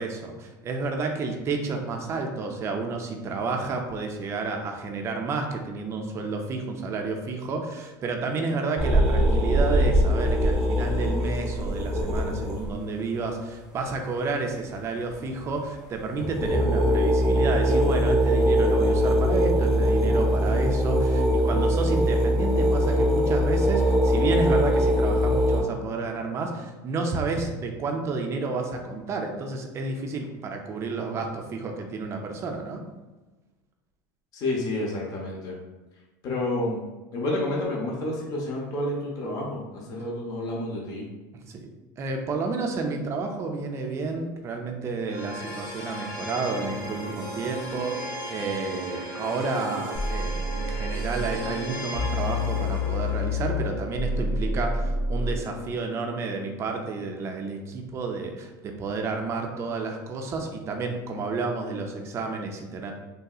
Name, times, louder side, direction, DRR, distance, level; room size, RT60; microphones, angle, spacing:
voice 1, 0.0-32.8 41.3-41.7 42.0-62.9, right 3 dB, 25° right, 3 dB, 0.4 m, -30 dB
sound 1, 8.8-12.7 15.4-15.6 15.9-25.6, equal, 5° right, 0.8 m, -22 dB
voice 2, 34.3-35.6 36.2-36.8 37.1-41.1, left 1 dB, 35° left, -2 dB, 0.7 m, -29 dB
sound 2, 45.1-56.1, right 1 dB, 55° left, 1.4 m, -37 dB
sound 3, 49.9-51.4 51.9-55.4, left 2 dB, 70° left, 0.9 m, -28 dB
3.3 x 2.7 x 2.3 m, 1.2 s
supercardioid pair, 145°, 10 cm